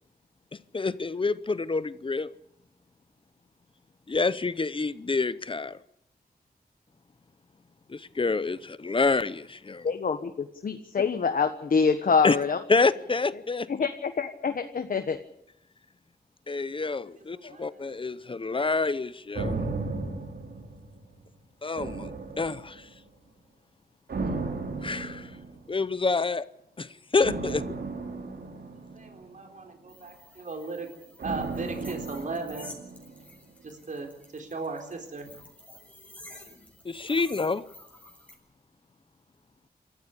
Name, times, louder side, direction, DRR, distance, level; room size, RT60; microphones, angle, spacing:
voice 1, 0.7-2.3 4.1-5.8 7.9-9.9 12.2-12.4 12.7-13.7 16.5-19.6 21.6-22.1 22.4-22.9 24.8-25.3 25.7-26.5 26.8-27.6 36.8-37.6, left 3 dB, 30° left, 0.8 m, -27 dB
voice 2, 9.8-12.6 13.7-15.2 17.4-17.5, left 5 dB, 60° left, 1.4 m, -26 dB
voice 3, 17.3-17.8 28.9-32.8 33.6-35.3, right 3 dB, 50° right, 4.0 m, -37 dB
sound 1, 19.3-21.3 21.8-23.0 24.1-25.8 27.2-29.6 31.2-33.4 33.7-33.8, right 3 dB, 80° right, 3.6 m, -35 dB
sound 2, 29.9-38.3, left 1 dB, 10° left, 7.0 m, -50 dB
27.0 x 14.0 x 8.4 m
wide cardioid pair, 140°, 16 cm